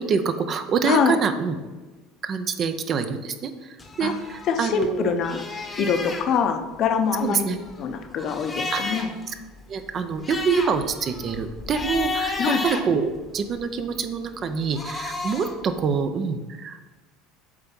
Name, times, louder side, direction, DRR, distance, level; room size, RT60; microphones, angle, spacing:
voice 1, 0.0-1.6 2.2-5.1 5.8-5.9 7.2-7.6 8.7-9.0 9.3-9.4 9.7-16.8, right 5 dB, 40° right, 9 dB, 0.6 m, -26 dB
voice 2, 0.8-1.2 4.0-4.1 4.5-5.4 5.8-7.5 7.8-9.1 12.4-12.6, left 6 dB, 50° left, 7 dB, 0.7 m, -24 dB
sound 1, 3.8-4.9 5.2-6.3 7.1-9.2 9.6-9.7 10.0-13.6 14.5-15.6, left 3 dB, 20° left, 0.9 m, -32 dB
8.1 x 3.4 x 5.4 m, 1.2 s
supercardioid pair, 120°, 0 cm